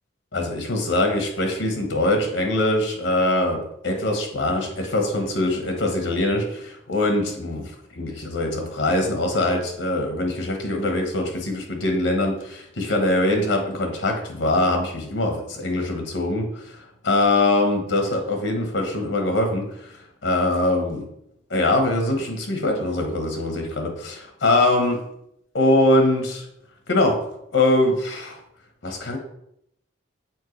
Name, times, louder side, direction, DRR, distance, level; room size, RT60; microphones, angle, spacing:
voice 1, 0.3-16.6 17.0-19.9 20.2-21.1 21.5-25.0 25.5-26.4 26.9-27.2 27.5-28.4 28.8-29.2, left 1 dB, 75° left, 3 dB, 1.1 m, -22 dB
7.3 x 4.5 x 3.2 m, 0.76 s
head